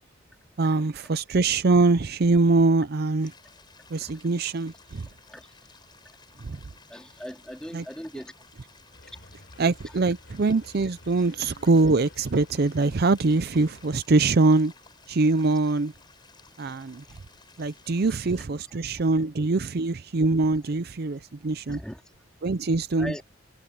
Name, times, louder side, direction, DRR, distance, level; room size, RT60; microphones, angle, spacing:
voice 1, 0.6-3.3 3.9-5.1 6.4-6.6 7.7-7.8 9.6-14.7 15.1-15.9 16.6-17.0 17.6-21.8 22.4-23.2, right 3 dB, 50° right, 0.6 m, -23 dB
sound 1, 3.2-18.5, left 4 dB, 20° left, 7.9 m, -55 dB
voice 2, 6.9-8.3 21.7-22.0 23.0-23.2, equal, 5° left, 2.7 m, -38 dB
sound 2, 8.9-13.9, left 1 dB, 60° left, 4.8 m, -51 dB
head